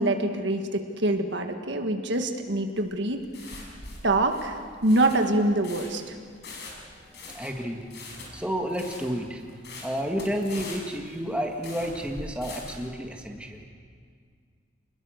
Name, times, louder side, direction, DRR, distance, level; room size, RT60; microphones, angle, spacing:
voice 1, 0.0-3.2 4.0-6.1, right 1 dB, 60° right, 5 dB, 1.8 m, -25 dB
sound 1, 2.8-12.9, left 3 dB, 60° left, 5.8 m, -43 dB
voice 2, 6.7-9.4 9.8-13.7, equal, 5° right, 1 dB, 1.8 m, -31 dB
28.0 x 21.0 x 6.6 m, 2.1 s
head